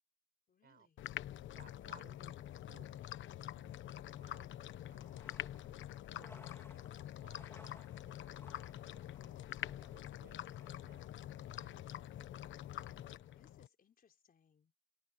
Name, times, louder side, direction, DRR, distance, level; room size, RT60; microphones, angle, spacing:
voice 1, 0.5-1.0 13.3-14.7, left 7 dB, 45° left, 4.5 m, -70 dB
sound 1, 1.0-13.7, left 12 dB, 75° left, 1.1 m, -46 dB
voice 2, 1.6-3.0 3.3-5.8 6.1-8.5 9.2-11.2 11.5-12.4, right 8 dB, 55° right, 5.4 m, -66 dB
sound 2, 4.8-13.5, left 2 dB, 15° left, 3.3 m, -64 dB
open air
cardioid pair, 90°, 20 cm